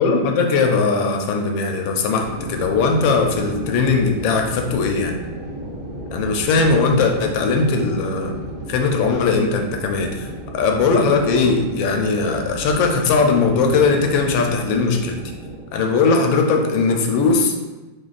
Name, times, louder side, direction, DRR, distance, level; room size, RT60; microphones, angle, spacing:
voice 1, 0.0-5.1 6.1-8.3 8.7-10.3 10.5-15.2 15.7-17.5, left 4 dB, 90° left, 3 dB, 1.3 m, -19 dB
sound 1, 2.2-15.6, right 1 dB, 55° right, 1.1 m, -33 dB
3.2 x 2.4 x 3.8 m, 1.2 s
omnidirectional pair, 2.0 m